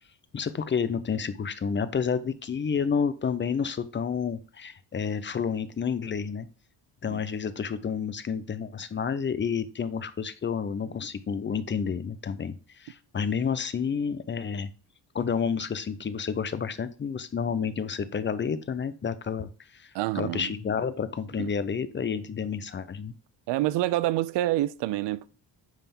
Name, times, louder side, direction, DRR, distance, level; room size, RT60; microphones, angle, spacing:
voice 1, 0.3-6.5 7.0-14.7 15.1-23.1, left 6 dB, 30° left, 0.6 m, -30 dB
voice 2, 19.9-20.5 21.4-21.5 23.5-25.3, right 15 dB, 80° right, 0.5 m, -27 dB
9.0 x 3.5 x 4.3 m
cardioid pair, 120°, 41 cm